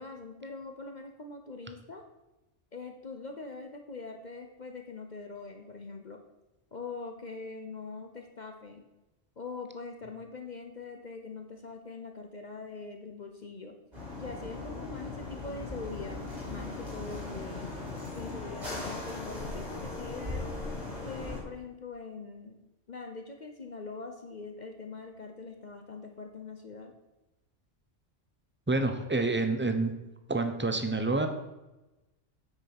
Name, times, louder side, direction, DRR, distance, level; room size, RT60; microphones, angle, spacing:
voice 1, 0.0-2.0 2.7-6.2 6.7-8.8 9.4-13.7 14.2-16.2 16.5-17.7 18.1-20.5 21.0-22.6 22.9-26.9, left 4 dB, 40° left, 4 dB, 0.9 m, -43 dB
sound 1, 13.9-21.4, left 2 dB, 35° right, 3.5 m, -38 dB
voice 2, 28.7-29.9 30.3-31.3, right 2 dB, 10° right, 7 dB, 0.7 m, -28 dB
8.9 x 6.2 x 6.0 m, 1.0 s
omnidirectional pair, 1.3 m